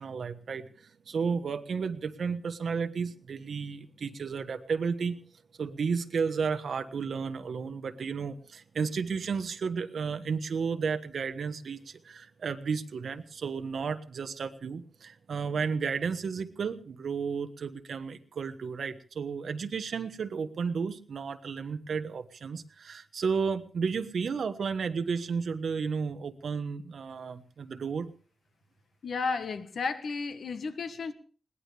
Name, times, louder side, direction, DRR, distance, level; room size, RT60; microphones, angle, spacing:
voice 1, 0.0-5.2 5.6-28.1, right 5 dB, 65° right, 8 dB, 1.3 m, -33 dB
voice 2, 29.0-31.1, left 4 dB, 65° left, 9 dB, 1.4 m, -33 dB
21.0 x 18.5 x 3.4 m, 0.40 s
wide cardioid pair, 165°, 0 cm